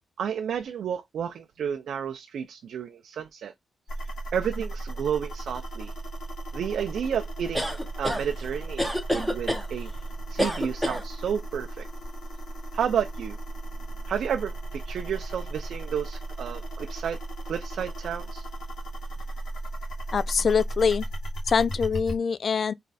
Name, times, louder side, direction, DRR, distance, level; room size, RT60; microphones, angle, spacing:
voice 1, 0.2-3.5 4.3-5.9 6.5-9.9 10.3-11.9 12.7-13.4 14.1-17.2 17.5-18.5, right 8 dB, 80° right, 0.4 m, -31 dB
sound 1, 3.9-22.2, right 2 dB, 70° left, 1.7 m, -36 dB
sound 2, 7.5-8.2 8.8-9.6 10.4-11.0, equal, 5° left, 1.4 m, -27 dB
voice 2, 20.1-21.0 21.5-22.7, left 6 dB, 55° left, 0.3 m, -24 dB
4.0 x 3.2 x 2.3 m
cardioid pair, 85°, 0 cm